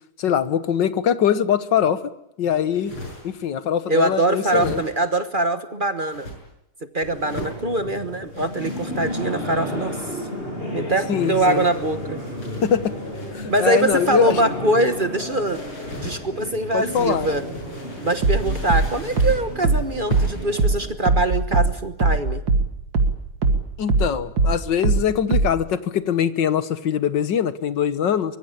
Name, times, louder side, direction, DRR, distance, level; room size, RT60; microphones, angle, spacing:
voice 1, 0.2-2.0 2.4-2.9 3.2-4.8 11.1-11.7 12.6-12.9 13.3-14.4 16.7-17.3 18.0-18.1 23.8-28.4, left 8 dB, 60° left, 13 dB, 1.8 m, -22 dB
sound 1, 2.6-3.5 4.3-5.2 6.0-6.4 7.1-7.6 8.3-9.8 10.8-14.6 15.4-16.2 16.8-19.5 20.1-20.6, left 1 dB, 75° left, 7.6 m, -38 dB
voice 2, 3.9-6.3 6.9-9.9 10.7-12.2 13.5-15.6 16.0-17.4 18.0-22.4, right 2 dB, 30° right, 10 dB, 1.0 m, -23 dB
sound 2, 7.0-20.9, left 1 dB, 25° left, 6.9 m, -33 dB
sound 3, 18.2-23.2 23.4-25.7, right 3 dB, 60° right, 3.0 m, -20 dB
24.0 x 23.0 x 8.8 m, 0.83 s
omnidirectional pair, 2.4 m